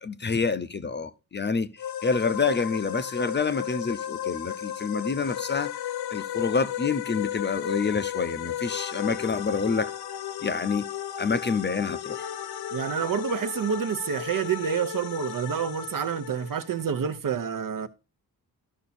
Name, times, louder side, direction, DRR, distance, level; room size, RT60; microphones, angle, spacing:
voice 1, 0.0-5.7 6.1-9.9 10.4-10.8 11.2-12.3, left 5 dB, 30° left, 0.6 m, -27 dB
sound 1, 1.8-17.2, left 11 dB, 90° left, 0.8 m, -34 dB
voice 2, 12.7-17.9, right 8 dB, 60° right, 0.9 m, -28 dB
13.0 x 5.8 x 4.2 m
wide cardioid pair, 145°, 37 cm